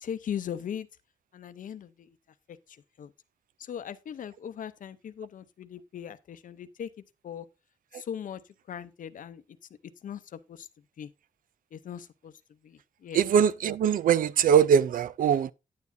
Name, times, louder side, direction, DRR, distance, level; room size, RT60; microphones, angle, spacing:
voice 1, 0.0-0.9 1.3-2.1 3.0-3.1 3.6-6.9 7.2-7.5 7.9-8.4 8.7-9.4 10.0-10.7 11.0-11.1 11.7-12.3 12.6-13.2, left 8 dB, 75° left, 0.7 m, -39 dB
voice 2, 13.1-15.5, right 8 dB, 85° right, 0.4 m, -22 dB
9.5 x 9.4 x 2.6 m
wide cardioid pair, 140°, 14 cm